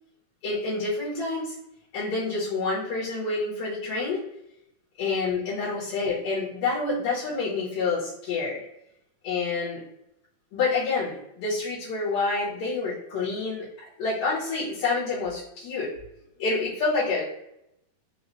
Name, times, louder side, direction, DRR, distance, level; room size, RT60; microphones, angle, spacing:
voice 1, 0.4-1.5 1.9-4.2 5.0-8.6 9.2-9.8 10.5-13.7 14.0-15.9 16.4-17.2, left 3 dB, 70° left, -14 dB, 3.1 m, -28 dB
6.6 x 2.6 x 2.7 m, 0.81 s
omnidirectional pair, 4.3 m